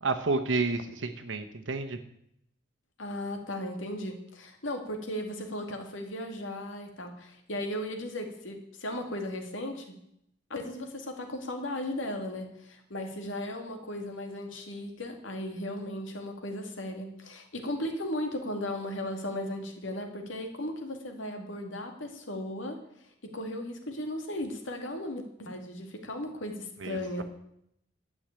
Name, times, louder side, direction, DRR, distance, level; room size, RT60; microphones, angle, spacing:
voice 1, 0.0-2.0 26.8-27.2, right 3 dB, 80° right, 7 dB, 1.0 m, -30 dB
voice 2, 3.0-9.9 10.5-22.8 23.2-27.2, left 1 dB, 85° left, 4 dB, 2.3 m, -36 dB
12.0 x 6.4 x 8.9 m, 0.75 s
head